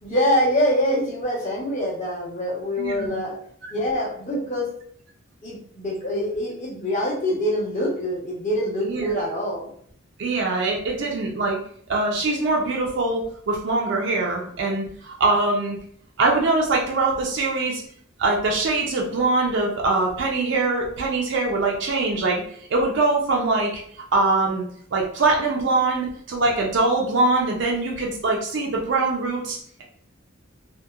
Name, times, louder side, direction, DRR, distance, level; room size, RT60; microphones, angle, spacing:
voice 1, 0.0-3.4 3.7-4.7 5.4-9.7, equal, 35° left, -5 dB, 0.9 m, -24 dB
voice 2, 2.8-3.2 8.8-9.2 10.2-11.6 11.9-15.8 16.2-17.8 18.2-22.4 22.7-23.7 24.1-24.6 24.9-29.8, right 3 dB, 60° right, -1 dB, 0.4 m, -23 dB
2.7 x 2.1 x 2.3 m, 0.62 s
head